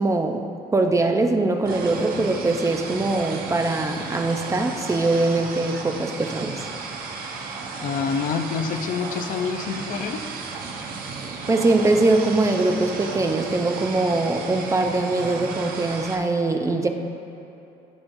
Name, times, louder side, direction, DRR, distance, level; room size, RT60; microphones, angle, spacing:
voice 1, 0.0-6.5 11.5-16.9, right 2 dB, 20° right, 5 dB, 0.6 m, -22 dB
sound 1, 1.7-16.2, right 4 dB, 60° right, 1.0 m, -34 dB
voice 2, 7.8-10.2, left 6 dB, 55° left, 6 dB, 0.6 m, -27 dB
16.0 x 6.2 x 2.6 m, 2.9 s
cardioid pair, 110°, 17 cm